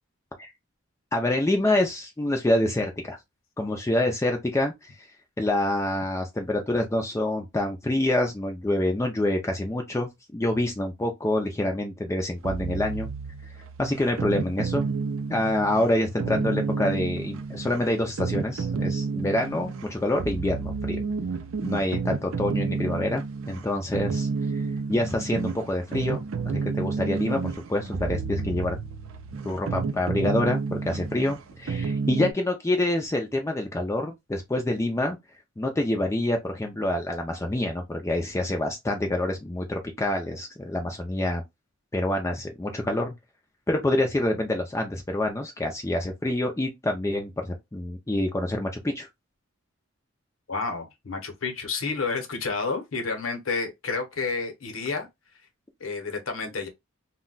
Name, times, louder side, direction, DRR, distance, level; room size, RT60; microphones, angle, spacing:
voice 1, 1.1-3.2 3.6-5.1 5.4-13.1 13.8-14.9 15.3-21.0 21.6-24.6 24.9-28.8 29.4-35.2 35.6-41.4 41.9-43.1 43.7-49.1, left 1 dB, 15° left, 0.4 m, -27 dB
sound 1, 12.4-32.3, right 4 dB, 70° right, 0.4 m, -31 dB
voice 2, 50.5-55.1 55.8-56.7, left 4 dB, 75° left, 0.8 m, -30 dB
2.2 x 2.1 x 3.8 m
head